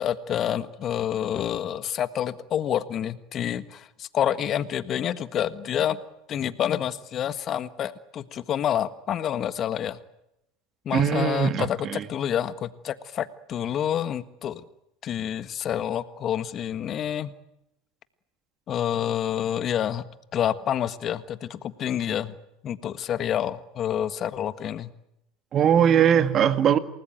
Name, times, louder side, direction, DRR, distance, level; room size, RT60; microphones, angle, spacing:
voice 1, 0.0-6.0 6.3-10.0 10.8-14.6 15.0-17.3 18.7-20.0 20.3-22.3 22.6-24.9, left 10 dB, 45° left, 13 dB, 1.5 m, -28 dB
voice 2, 10.9-12.1 25.5-26.8, right 9 dB, 40° right, 11 dB, 1.9 m, -20 dB
28.5 x 19.5 x 9.1 m, 0.84 s
hypercardioid pair, 75°, 0 cm